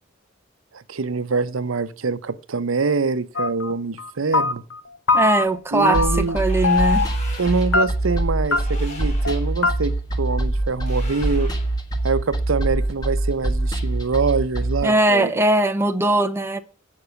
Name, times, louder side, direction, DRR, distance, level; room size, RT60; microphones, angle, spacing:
voice 1, 0.7-4.6 5.7-6.4 7.4-11.5 12.0-15.3, right 4 dB, 85° right, 0.7 m, -24 dB
sound 1, 3.4-3.7 4.0-4.8 5.1-5.6 5.8-6.4 6.6-7.2 7.7-8.2 8.5-8.6 8.9-9.0 9.3-9.4 9.6-9.7, left 4 dB, 65° left, 0.8 m, -21 dB
voice 2, 5.1-7.1 14.8-16.6, right 1 dB, 10° right, 0.7 m, -20 dB
sound 2, 5.9-14.8, right 2 dB, 20° left, 1.4 m, -24 dB
sound 3, 6.4-7.8 8.4-9.5 10.8-11.7, left 2 dB, 35° left, 3.3 m, -40 dB
8.4 x 6.0 x 7.9 m
head